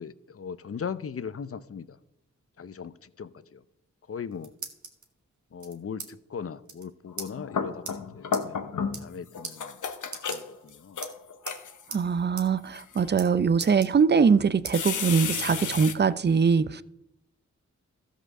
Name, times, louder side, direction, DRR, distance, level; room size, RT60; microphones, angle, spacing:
voice 1, 0.0-2.0 2.6-3.6 4.1-4.5 5.5-8.8 9.0-9.8 10.3-11.0, left 6 dB, 50° left, 0.6 m, -39 dB
sound 1, 4.0-5.1 5.6-6.1 6.4-6.5 6.7-6.9 7.2-7.3 7.9-8.0 8.3-8.5 8.8-9.2 9.4-9.6 10.1-10.7 11.0-11.6 11.9-12.0 12.4-12.5 12.8-13.3 13.6-14.3 14.7-14.8 15.3-16.2, right 4 dB, 70° right, 1.6 m, -40 dB
sound 2, 7.2-9.1 9.3-11.9 12.6-13.0 13.7-13.8 14.7-15.9, left 6 dB, 75° left, 0.9 m, -32 dB
voice 2, 11.9-16.8, right 5 dB, 35° right, 0.5 m, -22 dB
13.5 x 5.1 x 6.5 m
cardioid pair, 40°, 30 cm